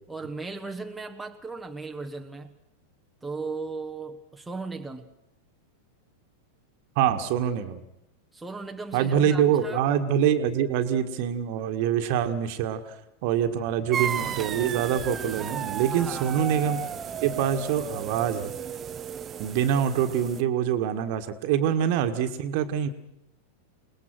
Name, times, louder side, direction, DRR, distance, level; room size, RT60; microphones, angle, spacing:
voice 1, 0.1-2.5 3.2-5.1 8.3-9.8 15.9-16.4, right 3 dB, 5° right, 2 dB, 1.3 m, -37 dB
voice 2, 7.0-7.8 8.9-12.9 13.2-16.8 17.2-18.5 19.4-22.9, right 9 dB, 45° right, 9 dB, 1.7 m, -25 dB
sound 1, 13.9-20.4, right 8 dB, 25° right, 0.9 m, -34 dB
28.5 x 19.5 x 6.3 m, 0.82 s
figure-of-eight pair, 90°, 0 cm